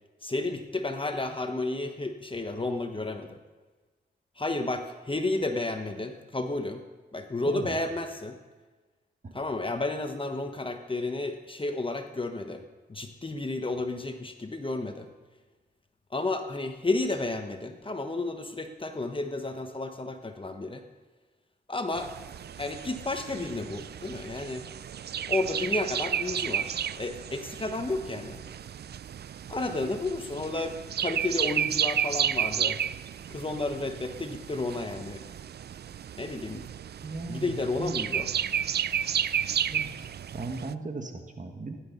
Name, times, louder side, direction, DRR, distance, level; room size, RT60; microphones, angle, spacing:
voice 1, 0.2-3.4 4.4-6.8 7.1-8.4 9.3-12.6 12.9-15.1 16.1-20.8 21.7-22.1 22.6-24.6 25.3-28.4 29.5-32.8 33.3-35.2 36.2-36.7 37.3-38.3, left 2 dB, 30° left, 6 dB, 1.2 m, -32 dB
voice 2, 7.5-7.8 9.2-9.4 37.0-38.0 39.7-41.7, right 3 dB, 45° right, 4 dB, 1.7 m, -37 dB
sound 1, 21.9-40.7, right 9 dB, 65° right, 0.4 m, -32 dB
16.0 x 11.0 x 5.4 m, 1.3 s
cardioid pair, 65°, 19 cm